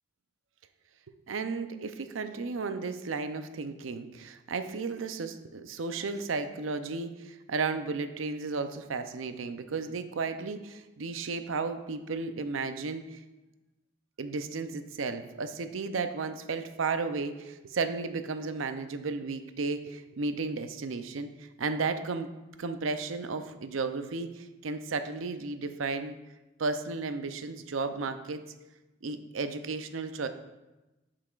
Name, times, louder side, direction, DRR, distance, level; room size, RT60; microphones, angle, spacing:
voice 1, 1.3-13.2 14.2-22.3 22.6-26.2 26.6-28.4 29.0-30.3, right 4 dB, 80° right, 9 dB, 0.6 m, -34 dB
11.0 x 5.8 x 2.4 m, 1.0 s
head